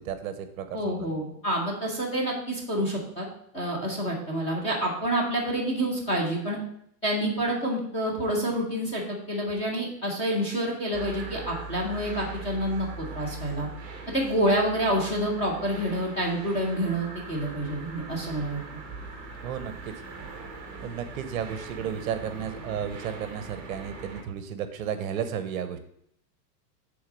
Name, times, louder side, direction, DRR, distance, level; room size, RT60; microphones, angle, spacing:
voice 1, 0.0-1.1 19.4-19.9 20.8-25.8, right 8 dB, 55° right, 9 dB, 0.8 m, -33 dB
voice 2, 0.7-3.3 3.5-6.6 7.0-13.7 14.1-18.6, right 1 dB, 15° left, -2 dB, 0.7 m, -28 dB
sound 1, 10.9-24.2, right 3 dB, 15° right, 1.1 m, -41 dB
6.3 x 3.8 x 6.1 m, 0.70 s
supercardioid pair, 170°, 50 cm